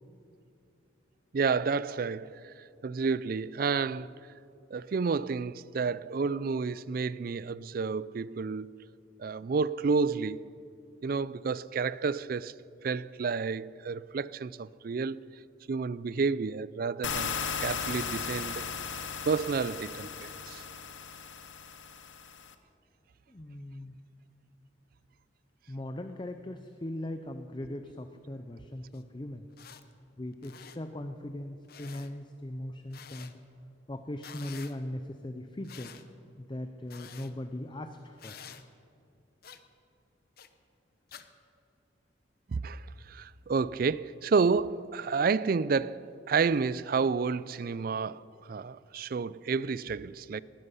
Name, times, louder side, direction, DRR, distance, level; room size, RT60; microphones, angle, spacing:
voice 1, 1.3-4.1 4.7-8.7 9.2-10.4 11.0-12.5 12.8-15.2 15.7-18.6 19.3-20.6 42.5-50.4, right 5 dB, 50° right, 0.4 m, -30 dB
sound 1, 17.0-22.5, left 6 dB, 75° left, 1.0 m, -36 dB
voice 2, 23.3-23.9 25.7-29.5 30.2-33.4 33.9-35.9 36.4-38.4, left 1 dB, 25° left, 0.6 m, -39 dB
sound 2, 28.9-29.0 29.5-29.8 30.3-30.8 31.7-32.1 32.9-33.3 34.2-34.8 35.6-36.0 36.9-37.3 38.2-38.6 39.4-39.6 40.4-40.5 41.1-41.2, left 7 dB, 50° left, 0.8 m, -48 dB
19.5 x 13.5 x 5.6 m
head